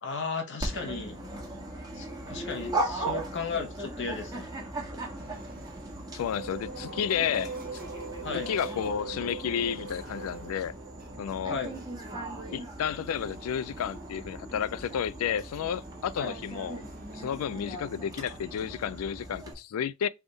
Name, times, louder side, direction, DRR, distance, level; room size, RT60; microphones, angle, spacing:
voice 1, 0.0-1.2 1.9-4.5 8.2-8.5 11.5-11.7 16.2-16.4, left 4 dB, 55° left, 1.0 m, -35 dB
Dog, 0.6-19.5, right 2 dB, 20° right, 1.4 m, -38 dB
sound 1, 5.2-19.4, right 2 dB, 40° right, 0.8 m, -52 dB
voice 2, 6.1-7.5 8.3-10.7 11.2-11.6 12.5-16.8 17.1-20.1, left 8 dB, 75° left, 0.3 m, -31 dB
sound 2, 6.4-12.1, right 4 dB, 85° right, 1.5 m, -41 dB
3.5 x 3.5 x 3.9 m
head